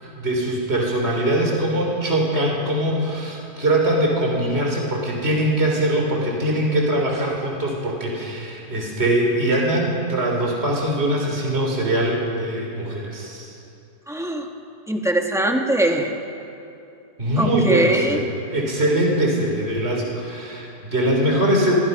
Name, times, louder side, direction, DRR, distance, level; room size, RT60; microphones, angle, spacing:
voice 1, 0.0-13.5 17.2-18.2 18.5-21.8, right 1 dB, 35° right, -1 dB, 4.0 m, -22 dB
voice 2, 14.1-14.5 14.9-16.1 17.4-18.2, right 1 dB, ahead, 2 dB, 1.8 m, -21 dB
28.0 x 22.0 x 5.6 m, 2.7 s
omnidirectional pair, 1.8 m